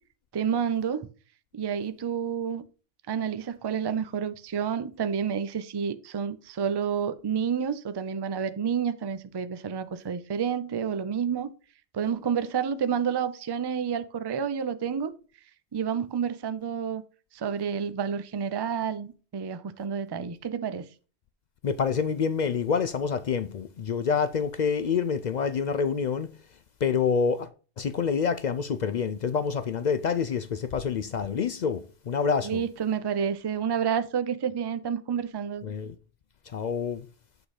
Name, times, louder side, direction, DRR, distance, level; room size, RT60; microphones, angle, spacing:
voice 1, 0.3-1.1 1.5-2.6 3.1-11.5 11.9-15.1 15.7-17.0 17.3-20.9 32.4-35.7, right 7 dB, 40° right, 0.3 m, -29 dB
voice 2, 21.6-26.3 26.8-27.5 27.8-32.6 35.6-35.9 36.5-37.1, left 6 dB, 60° left, 0.5 m, -27 dB
8.6 x 3.9 x 4.8 m
omnidirectional pair, 1.2 m